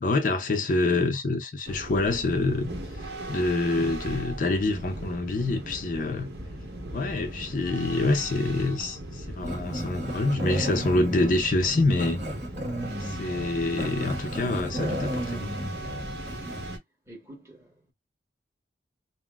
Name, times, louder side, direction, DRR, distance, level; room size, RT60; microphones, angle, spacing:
voice 1, 0.0-6.3 6.9-12.2 13.0-15.7, left 2 dB, 45° left, 0.4 m, -26 dB
sound 1, 1.7-16.8, right 1 dB, 60° right, 1.0 m, -38 dB
Growling, 9.4-16.7, equal, 40° right, 1.2 m, -34 dB
voice 2, 17.1-17.9, right 1 dB, 15° right, 1.2 m, -48 dB
3.8 x 2.1 x 2.3 m
head